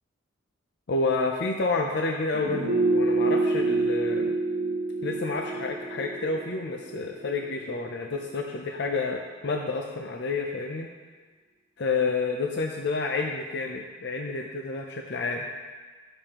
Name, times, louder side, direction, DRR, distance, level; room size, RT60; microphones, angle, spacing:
voice 1, 0.9-4.3 5.0-10.9 11.8-15.5, left 3 dB, 60° left, 1 dB, 0.6 m, -29 dB
sound 1, 2.3-7.5 7.8-7.9, right 2 dB, 45° right, 1.2 m, -27 dB
11.5 x 6.8 x 3.0 m, 1.4 s
head